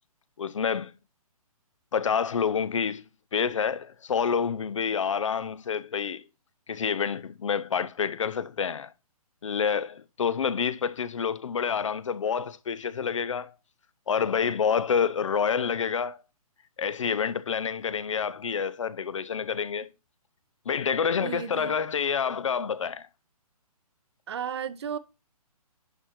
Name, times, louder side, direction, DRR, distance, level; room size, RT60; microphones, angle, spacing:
voice 1, 0.4-0.9 1.9-3.0 3.3-6.2 6.7-8.9 9.4-13.5 14.1-16.2 16.8-19.9 20.7-23.1, left 6 dB, 55° left, 0.6 m, -28 dB
voice 2, 21.1-21.8 24.3-25.0, right 8 dB, 45° right, 0.8 m, -34 dB
11.0 x 4.4 x 4.4 m
figure-of-eight pair, 130°, 19 cm